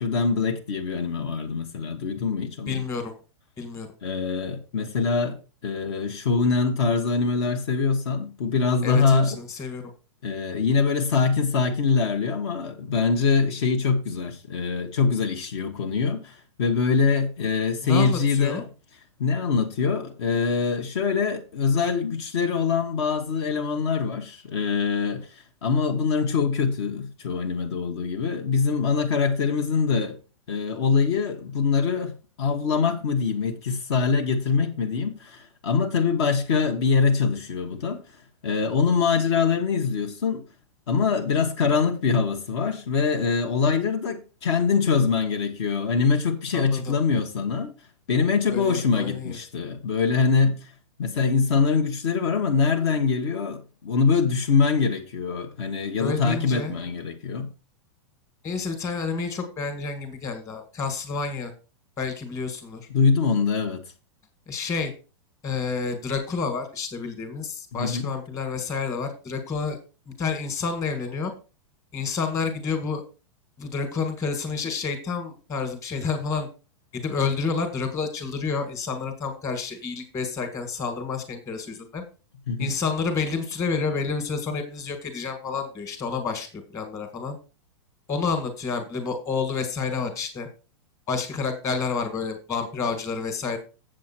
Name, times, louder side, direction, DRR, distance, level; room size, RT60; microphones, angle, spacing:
voice 1, 0.0-2.8 4.0-9.4 10.2-18.6 19.2-30.2 30.5-38.0 38.4-40.4 40.9-47.7 48.1-50.7 51.0-57.5 62.9-63.8 67.7-68.1 82.5-82.7, left 5 dB, 55° left, 1.3 m, -24 dB
voice 2, 2.7-3.1 3.6-3.9 8.8-9.9 17.8-18.6 46.5-47.0 48.5-49.4 56.0-56.7 58.4-61.5 62.0-62.9 64.5-64.9 65.4-69.8 70.0-71.3 71.9-73.0 73.6-76.5 76.9-82.0 82.6-87.4 88.1-90.5 91.1-93.6, left 5 dB, 20° left, 1.7 m, -29 dB
7.7 x 7.5 x 4.4 m
supercardioid pair, 165°, 16 cm